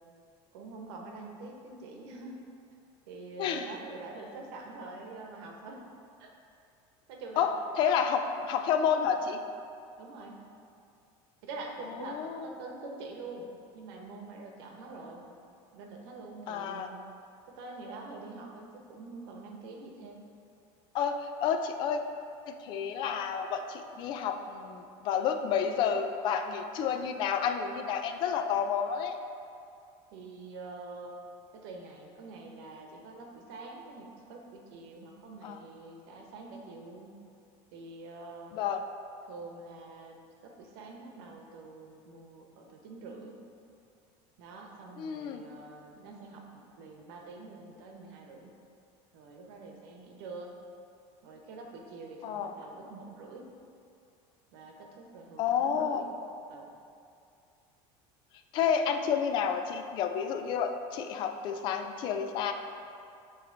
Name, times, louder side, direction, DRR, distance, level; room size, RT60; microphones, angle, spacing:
voice 1, 0.5-2.4 3.1-5.8 6.2-6.3 7.1-7.5 10.0-10.4 11.4-13.5 13.7-15.2 15.7-17.0 17.5-20.3 30.1-31.1 31.5-37.2 37.7-38.5 39.3-43.4 44.4-48.5 49.1-50.6 51.2-53.5 54.5-56.1 56.5-56.7, right 3 dB, 80° right, 1 dB, 0.9 m, -45 dB
voice 2, 3.4-3.7 7.4-9.4 12.0-12.5 16.5-16.9 20.9-22.0 22.5-29.2 35.4-35.6 38.5-38.8 45.0-45.4 52.2-52.5 55.4-56.0 58.5-62.5, left 7 dB, 40° left, 6 dB, 0.4 m, -30 dB
9.1 x 3.1 x 3.8 m, 2.5 s
cardioid pair, 175°, 13 cm